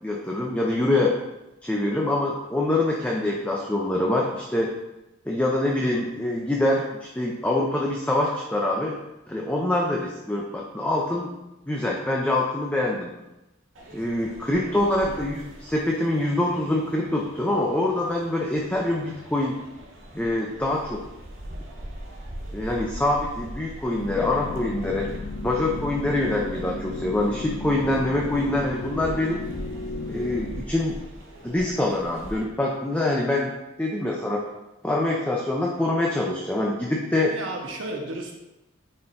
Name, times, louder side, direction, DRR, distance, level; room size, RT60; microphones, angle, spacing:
voice 1, 0.0-1.1 1.6-4.7 5.3-9.0 9.3-11.3 11.7-13.1 13.9-19.6 20.1-21.0 22.5-25.1 25.4-29.4 30.1-31.0 31.4-33.5 33.8-34.4 34.8-37.3, left 1 dB, 10° left, -2 dB, 0.5 m, -25 dB
sound 1, 13.7-32.4, right 1 dB, 90° right, 1.9 m, -42 dB
sound 2, 24.0-30.6, left 2 dB, 60° left, 0.4 m, -34 dB
voice 2, 37.3-38.4, right 2 dB, 70° right, 1 dB, 1.1 m, -33 dB
9.3 x 4.3 x 2.6 m, 0.95 s
head